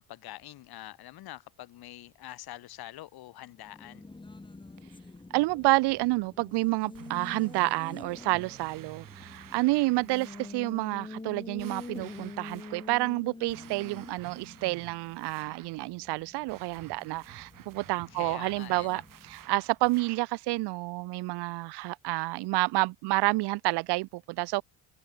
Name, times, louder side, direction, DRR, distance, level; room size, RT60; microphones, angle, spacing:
voice 1, 0.0-4.0 18.1-19.0, left 14 dB, 65° left, 3.5 m, -45 dB
Race car auto racing, 3.5-19.8, left 3 dB, 10° left, 2.4 m, -47 dB
voice 2, 5.3-19.0 19.3-24.6, right 22 dB, 90° right, 1.6 m, -29 dB
sound 1, 6.9-10.6 11.6-13.0 13.5-15.8 16.5-20.3, right 11 dB, 55° right, 3.9 m, -51 dB
open air
cardioid pair, 120°, 39 cm